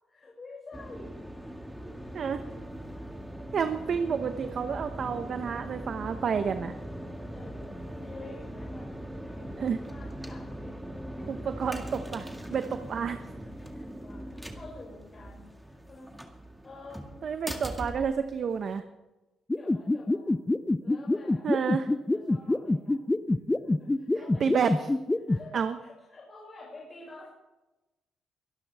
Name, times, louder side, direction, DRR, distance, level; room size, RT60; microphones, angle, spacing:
voice 1, 0.1-2.1 2.9-3.0 7.3-8.9 9.2-11.3 13.6-16.1 16.6-17.3 19.5-20.3 20.8-23.2 23.6-24.4 25.3-27.3, left 2 dB, 35° left, -5 dB, 6.3 m, -49 dB
sound 1, 0.7-18.8, equal, 5° right, 2.1 m, -41 dB
voice 2, 3.5-6.7 9.6-9.8 11.3-13.2 17.2-18.8 21.4-21.9 24.4-24.9 25.5-25.8, right 6 dB, 55° right, 8 dB, 1.0 m, -30 dB
sound 2, 19.5-25.4, left 2 dB, 15° left, 0.6 m, -24 dB
23.5 x 12.0 x 3.6 m, 1.0 s
cardioid pair, 90°, 0 cm